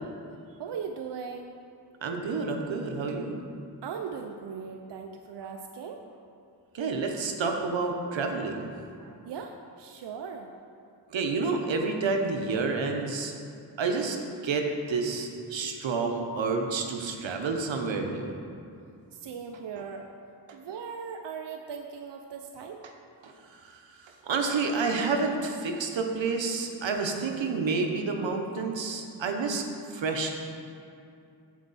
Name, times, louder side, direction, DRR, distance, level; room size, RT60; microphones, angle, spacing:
voice 1, 0.6-1.6 3.8-6.2 8.7-10.5 19.1-20.1 20.5-22.8, right 6 dB, 70° right, 3 dB, 0.6 m, -39 dB
voice 2, 2.0-3.4 6.7-8.7 11.1-13.3 13.8-14.2 14.4-18.3 22.8-22.9 23.2-23.3 23.6-29.6 29.9-30.3, right 4 dB, 90° right, 3 dB, 0.9 m, -29 dB
13.5 x 4.7 x 4.1 m, 2.5 s
cardioid pair, 50°, 44 cm